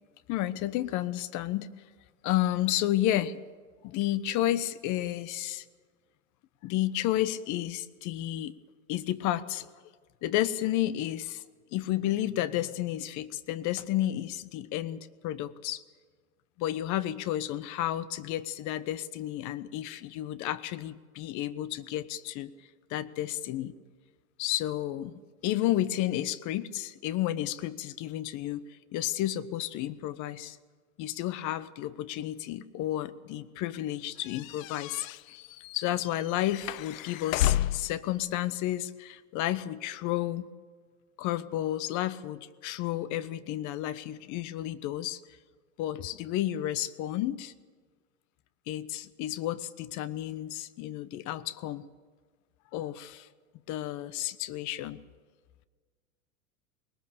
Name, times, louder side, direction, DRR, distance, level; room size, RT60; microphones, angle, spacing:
voice 1, 0.3-1.7 2.2-3.4 3.8-5.6 6.6-8.5 8.9-9.7 10.2-11.4 11.7-15.8 16.6-22.5 22.9-23.7 24.4-25.1 25.4-28.6 28.9-30.6 31.0-35.4 35.7-40.5 41.2-45.2 45.8-47.5 48.7-51.8 52.7-53.3 53.7-55.0, left 13 dB, 45° left, 15 dB, 1.1 m, -31 dB
sound 1, 34.3-38.0, left 14 dB, 65° left, 0.6 m, -32 dB
20.5 x 19.0 x 6.9 m, 1.5 s
hypercardioid pair, 100°, 43 cm